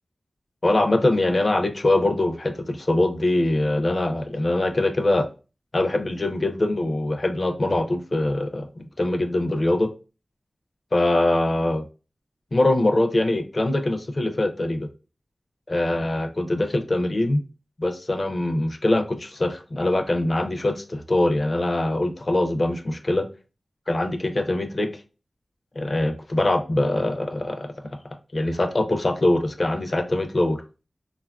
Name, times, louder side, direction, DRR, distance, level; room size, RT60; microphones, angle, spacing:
voice 1, 0.6-5.3 5.7-9.9 10.9-11.8 12.5-14.9 15.7-17.4 17.8-23.3 23.9-25.0 25.8-27.7 28.3-30.6, left 1 dB, 45° left, 7 dB, 0.4 m, -23 dB
3.5 x 2.4 x 2.2 m, 0.33 s
wide cardioid pair, 70°, 0 cm